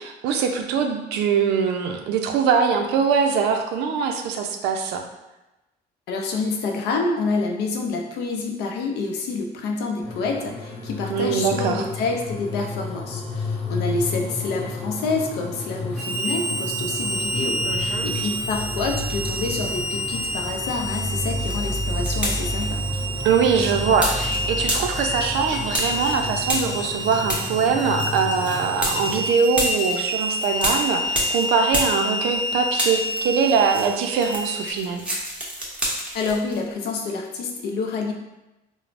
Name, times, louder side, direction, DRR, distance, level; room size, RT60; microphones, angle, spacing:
voice 1, 0.0-5.0 11.1-11.8 17.7-18.1 23.2-35.1, right 6 dB, 85° right, 5 dB, 0.4 m, -22 dB
voice 2, 6.1-22.8 36.1-38.1, left 3 dB, 80° left, 2 dB, 0.5 m, -27 dB
sound 1, 10.0-29.2, left 2 dB, 30° left, 0.9 m, -31 dB
Harmonica, 16.0-34.7, equal, 45° right, 0.6 m, -29 dB
sound 2, 18.6-19.7 20.1-32.5 32.7-36.6, equal, 5° right, 0.7 m, -30 dB
3.2 x 2.0 x 2.4 m, 1.0 s
cardioid pair, 110°, 17 cm